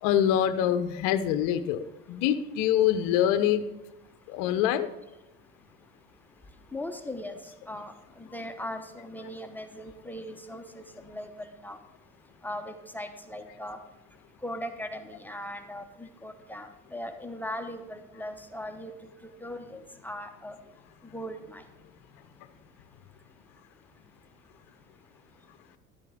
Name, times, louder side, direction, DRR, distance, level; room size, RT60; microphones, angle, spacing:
voice 1, 0.0-3.7 4.3-4.9, left 10 dB, 50° left, 11 dB, 0.8 m, -25 dB
voice 2, 6.7-7.4 7.7-11.8 12.4-13.8 14.4-20.6 21.1-21.6, left 1 dB, 5° left, 6 dB, 0.9 m, -39 dB
12.5 x 11.0 x 3.7 m, 0.95 s
figure-of-eight pair, 70°, 42 cm